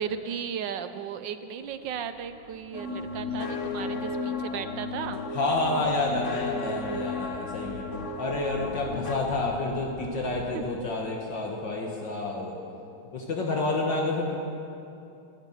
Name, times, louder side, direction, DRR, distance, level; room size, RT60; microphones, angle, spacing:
voice 1, 0.0-5.2 10.5-10.6, right 8 dB, 70° right, 10 dB, 1.2 m, -35 dB
sound 1, 1.6-10.6, left 1 dB, 90° left, 2.4 m, -48 dB
sound 2, 2.7-9.2, left 3 dB, 40° left, 1.3 m, -34 dB
voice 2, 5.3-7.9 8.2-12.6 13.1-14.4, left 2 dB, 60° left, 0 dB, 2.0 m, -29 dB
12.0 x 11.0 x 9.9 m, 2.7 s
omnidirectional pair, 2.2 m